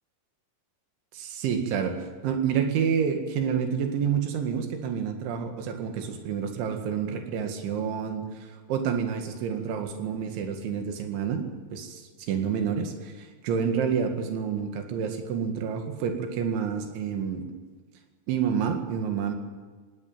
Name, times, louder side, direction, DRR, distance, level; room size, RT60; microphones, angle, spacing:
voice 1, 1.1-17.5 18.3-19.3, right 7 dB, 85° right, 5 dB, 4.3 m, -29 dB
18.5 x 18.5 x 9.0 m, 1.4 s
omnidirectional pair, 5.2 m